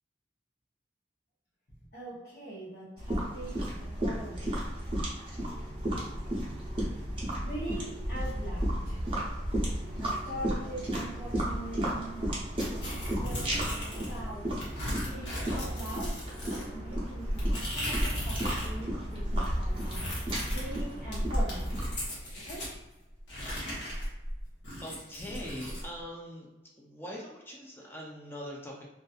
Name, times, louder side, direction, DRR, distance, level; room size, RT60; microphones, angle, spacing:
voice 1, 1.9-5.0 7.4-9.0 10.0-12.3 12.8-14.6 14.9-20.1 20.5-21.7 22.4-22.7, right 1 dB, 55° left, -10 dB, 0.8 m, -42 dB
sound 1, 3.0-22.0, right 1 dB, 30° right, 0.6 m, -34 dB
sound 2, 5.4-25.0, equal, 85° right, 0.5 m, -54 dB
sound 3, 12.6-14.2 14.6-18.8 19.0-22.7 23.3-25.9, equal, 85° left, 1.0 m, -35 dB
voice 2, 24.8-26.5 26.8-28.8, equal, 10° left, -2 dB, 0.4 m, -42 dB
2.6 x 2.3 x 2.4 m, 1.0 s
head